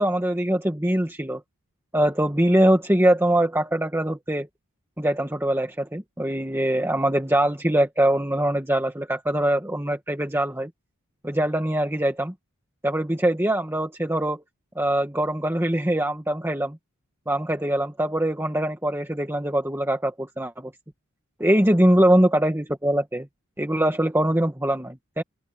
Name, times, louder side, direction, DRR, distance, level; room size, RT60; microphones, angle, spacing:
voice 1, 0.0-1.4 1.9-4.5 5.0-10.7 11.2-12.3 12.8-14.4 14.7-16.8 17.3-20.7 21.4-23.3 23.6-25.2, right 1 dB, 10° right, 1.6 m, -23 dB
open air
head